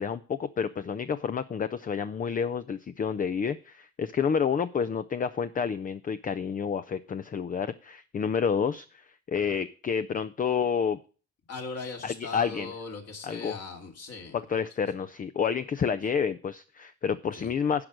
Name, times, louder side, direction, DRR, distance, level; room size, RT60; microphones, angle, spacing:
voice 1, 0.0-11.0 12.0-12.7 13.2-13.6 14.3-17.8, left 6 dB, 30° left, 13 dB, 0.4 m, -29 dB
voice 2, 11.5-14.4 17.3-17.5, left 4 dB, 55° left, 2 dB, 2.5 m, -39 dB
10.5 x 5.1 x 6.1 m, 0.37 s
cardioid pair, 90°, 30 cm